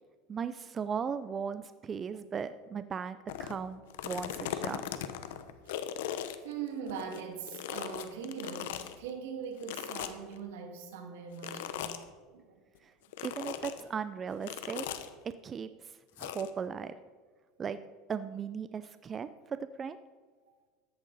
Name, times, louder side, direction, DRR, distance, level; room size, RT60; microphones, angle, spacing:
voice 1, 0.3-4.8 12.8-12.9 13.2-14.9 15.4-15.7 16.2-16.9 17.6-17.8 18.1-20.0, right 6 dB, 30° right, 12 dB, 0.4 m, -37 dB
sound 1, 3.3-3.6 3.9-7.2 7.5-8.9 9.6-10.4 11.4-12.0 13.1-13.8 14.4-15.1 16.2-16.5, left 10 dB, 80° left, 0.8 m, -38 dB
voice 2, 6.4-12.0 12.3-12.6 13.2-13.3, right 7 dB, 85° right, 4 dB, 2.0 m, -41 dB
13.5 x 10.5 x 4.0 m, 1.5 s
supercardioid pair, 120°, 0 cm